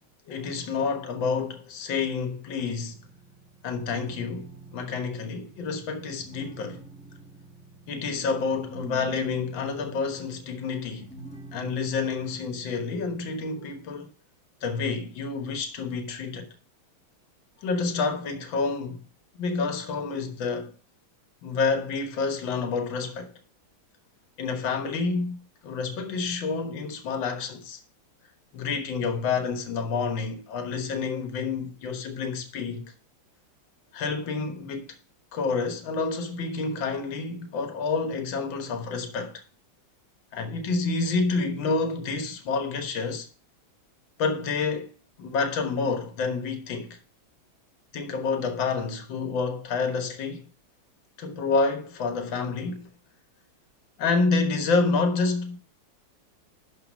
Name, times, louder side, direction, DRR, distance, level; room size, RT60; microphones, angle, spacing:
voice 1, 0.3-3.0 3.6-6.8 7.9-11.1 11.5-14.1 14.6-16.5 17.6-19.0 19.4-20.7 21.4-23.3 24.4-27.8 28.5-32.8 33.9-35.0 35.3-39.4 40.3-43.3 44.2-44.9 45.2-47.0 47.9-50.5 51.2-52.9 54.0-55.6, left 4 dB, 65° left, 2.0 m, -28 dB
sound 1, 2.5-13.4, right 2 dB, 5° left, 1.1 m, -46 dB
12.0 x 4.1 x 5.1 m
omnidirectional pair, 2.3 m